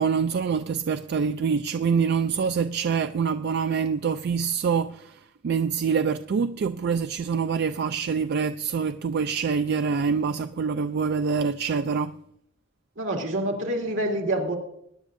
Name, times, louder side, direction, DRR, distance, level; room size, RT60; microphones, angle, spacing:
voice 1, 0.0-5.2 5.4-12.2, right 6 dB, 55° right, 0.3 m, -25 dB
voice 2, 13.0-14.6, right 1 dB, 80° right, 2.5 m, -27 dB
21.0 x 10.0 x 2.6 m
head